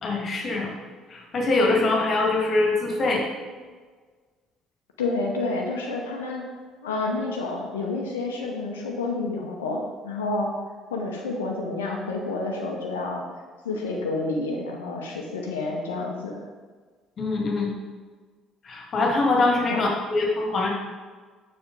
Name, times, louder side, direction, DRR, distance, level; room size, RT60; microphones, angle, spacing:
voice 1, 0.0-0.7 1.1-3.2 17.2-17.7 18.6-20.7, left 2 dB, 45° left, 0 dB, 1.9 m, -23 dB
voice 2, 5.0-6.5 6.8-10.5 10.9-13.2 13.6-16.4 19.7-19.8, left 3 dB, 80° left, 0 dB, 0.8 m, -29 dB
7.0 x 6.2 x 3.8 m, 1.5 s
figure-of-eight pair, 55°, 0 cm